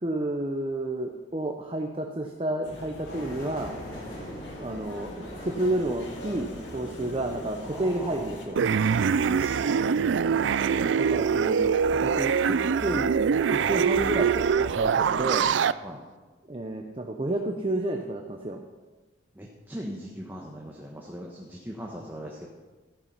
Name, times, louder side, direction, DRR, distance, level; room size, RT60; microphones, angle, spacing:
voice 1, 0.0-3.7 4.6-8.6 10.9-13.1 13.5-15.5 16.5-18.6, right 1 dB, 30° right, 3 dB, 0.8 m, -30 dB
sound 1, 2.6-8.5, left 1 dB, 65° left, 2.2 m, -42 dB
sound 2, 3.0-15.9, equal, 50° left, 5.1 m, -45 dB
voice 2, 7.7-8.3 9.2-10.0 15.8-16.0 19.3-22.5, equal, 10° right, -2 dB, 1.2 m, -40 dB
sound 3, 8.6-15.7, right 6 dB, 70° right, 0.4 m, -24 dB
14.0 x 9.6 x 5.8 m, 1.3 s
head